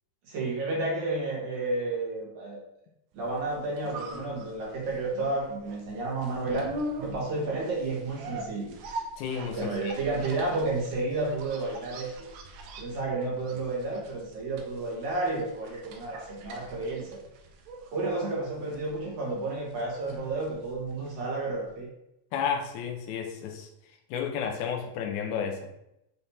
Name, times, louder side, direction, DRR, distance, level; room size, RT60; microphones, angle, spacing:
voice 1, 0.3-2.6 3.1-6.7 7.0-8.8 9.5-12.3 12.8-17.2 17.9-21.9, right 2 dB, 55° right, -4 dB, 2.9 m, -31 dB
sound 1, 3.4-21.4 21.7-21.8, right 1 dB, 75° right, 1.8 m, -42 dB
voice 2, 9.2-9.9 22.3-23.7 24.1-25.7, left 7 dB, 85° left, 2 dB, 1.7 m, -32 dB
7.1 x 3.3 x 4.2 m, 0.83 s
omnidirectional pair, 4.4 m